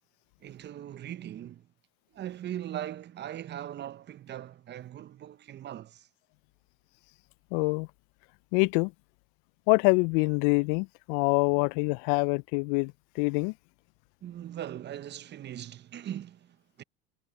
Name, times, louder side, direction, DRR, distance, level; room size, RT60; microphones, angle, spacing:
voice 1, 0.4-1.7 2.1-6.1 14.2-16.8, right 11 dB, 35° right, 1.1 m, -40 dB
voice 2, 7.5-7.9 8.5-8.9 9.7-13.5, left 31 dB, 55° left, 0.5 m, -25 dB
hypercardioid pair, 90°, 32 cm